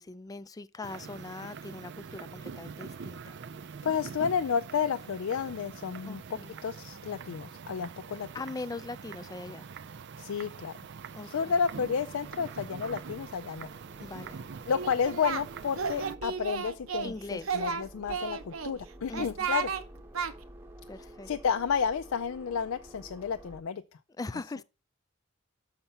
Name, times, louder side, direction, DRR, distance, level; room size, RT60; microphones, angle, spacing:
voice 1, 0.0-3.4 6.1-6.5 8.3-9.7 11.1-11.5 14.0-14.4 17.0-17.5 19.1-19.3 20.9-21.3 24.2-24.6, left 3 dB, 20° left, 0.3 m, -41 dB
sound 1, 0.8-16.2, right 6 dB, 60° right, 0.5 m, -44 dB
voice 2, 3.8-8.3 10.2-10.7 11.2-13.7 14.7-19.7 20.9-23.8, left 6 dB, 80° left, 0.4 m, -31 dB
sound 2, 10.3-23.6, right 1 dB, 10° right, 0.8 m, -52 dB
Singing, 14.7-15.4 15.7-17.1 17.4-18.7 19.1-19.8 20.1-20.3, right 6 dB, 90° right, 0.8 m, -33 dB
6.6 x 5.8 x 5.4 m
head